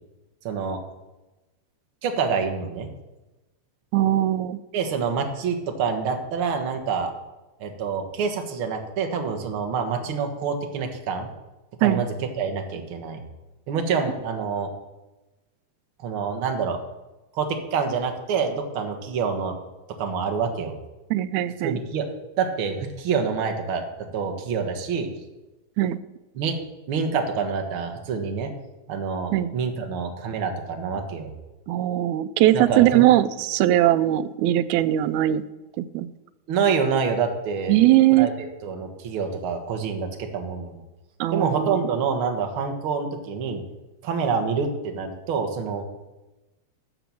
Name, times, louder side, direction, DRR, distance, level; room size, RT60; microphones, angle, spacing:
voice 1, 0.5-0.8 2.0-2.9 4.7-7.1 7.6-11.3 11.8-13.2 13.7-14.7 16.0-16.8 17.3-19.6 20.0-20.7 21.6-22.1 22.4-23.9 24.1-25.1 26.4-26.6 26.9-28.5 28.9-31.3 32.5-33.1 36.5-37.8 38.1-38.3 38.6-40.8 41.3-43.6 44.0-45.8, right 5 dB, 55° right, 5 dB, 1.9 m, -26 dB
voice 2, 3.9-4.6 11.8-12.0 21.1-21.8 25.8-26.0 29.3-29.5 31.7-35.4 35.8-36.1 37.7-38.3 41.2-41.9, right 14 dB, 90° right, 14 dB, 2.0 m, -20 dB
12.0 x 6.9 x 7.1 m, 1.1 s
omnidirectional pair, 3.3 m